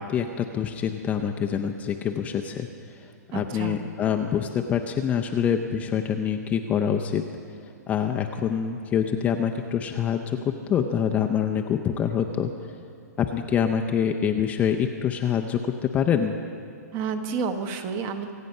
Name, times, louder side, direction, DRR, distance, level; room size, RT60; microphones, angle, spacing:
voice 1, 0.0-2.7 3.3-7.2 7.9-10.4 10.7-12.5 13.2-16.4, left 8 dB, 15° left, 4 dB, 0.5 m, -25 dB
voice 2, 3.3-3.8 16.9-18.3, right 5 dB, 25° right, 8 dB, 1.0 m, -30 dB
25.5 x 9.0 x 5.4 m, 2.5 s
hypercardioid pair, 155°, 9 cm